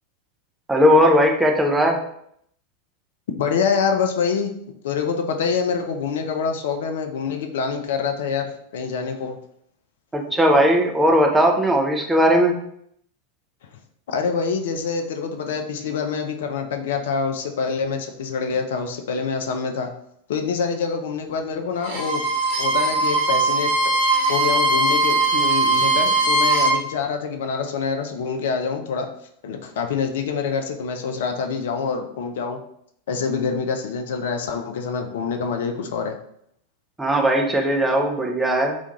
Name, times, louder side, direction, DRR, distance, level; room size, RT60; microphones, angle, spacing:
voice 1, 0.7-2.0 10.1-12.6 37.0-38.8, equal, 10° right, 1 dB, 0.4 m, -18 dB
voice 2, 3.4-4.5 4.8-9.4 14.1-19.9 20.3-22.2 22.6-23.7 24.3-29.1 29.4-32.6 33.1-36.2, left 5 dB, 55° left, 5 dB, 0.3 m, -26 dB
Bowed string instrument, 21.8-26.8, right 2 dB, 50° right, 0.8 m, -20 dB
2.4 x 2.3 x 2.8 m, 0.70 s
figure-of-eight pair, 90°, 0 cm